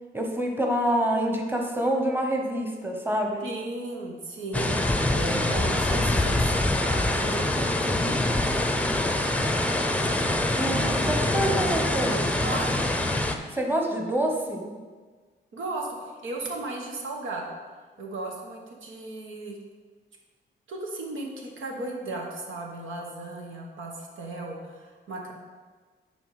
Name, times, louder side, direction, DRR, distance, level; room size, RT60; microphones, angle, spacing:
voice 1, 0.1-3.5 10.6-12.5 13.5-14.8, right 1 dB, 10° right, 2 dB, 1.1 m, -27 dB
voice 2, 3.4-4.8 5.1-8.1 12.4-12.8 15.5-17.4 18.0-19.6 20.7-25.3, right 2 dB, 90° right, 0 dB, 1.3 m, -35 dB
sound 1, 4.5-13.4, left 1 dB, 5° left, 0.6 m, -25 dB
9.9 x 4.1 x 4.9 m, 1.4 s
cardioid pair, 85°, 20 cm